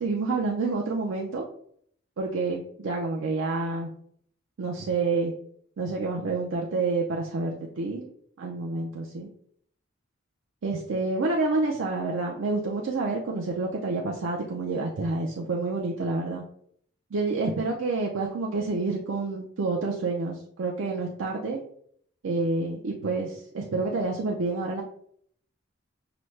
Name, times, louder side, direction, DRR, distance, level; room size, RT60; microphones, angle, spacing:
voice 1, 0.0-1.4 2.2-3.9 4.6-5.3 5.8-8.1 8.4-9.3 10.6-16.4 17.1-21.6 22.2-24.8, right 3 dB, 75° right, -1 dB, 0.5 m, -28 dB
5.8 x 2.0 x 3.1 m, 0.65 s
head